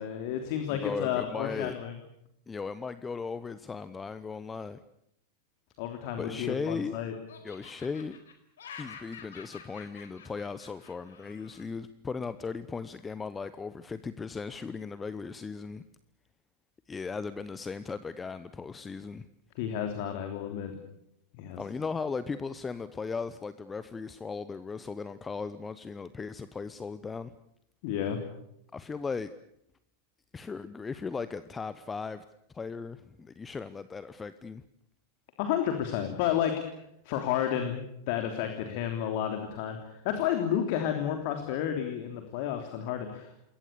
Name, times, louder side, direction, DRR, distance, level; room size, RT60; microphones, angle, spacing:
voice 1, 0.0-1.9 5.8-7.1 19.5-20.7 21.4-21.6 27.8-28.2 35.4-36.5 37.0-37.8 38.1-43.3, left 10 dB, 45° left, 5 dB, 3.3 m, -31 dB
voice 2, 0.7-1.8 2.5-4.8 6.2-7.0 7.4-8.2 8.8-15.8 16.9-19.3 21.5-27.3 28.7-29.3 30.3-32.2 32.5-34.6, left 5 dB, 15° left, 14 dB, 0.9 m, -37 dB
Laughter, 6.2-6.9 7.3-11.7, left 6 dB, 65° left, 4.6 m, -49 dB
28.0 x 22.0 x 7.0 m, 0.78 s
figure-of-eight pair, 90°, 0 cm